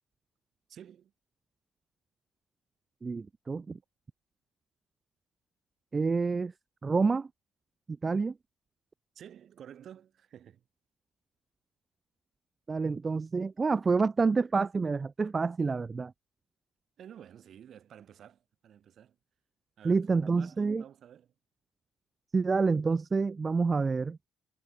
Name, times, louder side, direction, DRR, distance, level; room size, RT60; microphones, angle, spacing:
voice 1, 0.7-1.1 9.1-10.6 17.0-19.2 19.8-21.3, right 9 dB, 55° right, 4.5 m, -51 dB
voice 2, 3.0-3.8 5.9-6.5 6.8-7.3 8.0-8.3 12.7-16.1 19.8-20.8 22.3-24.2, right 4 dB, 25° right, 0.6 m, -28 dB
cardioid pair, 100°, 0 cm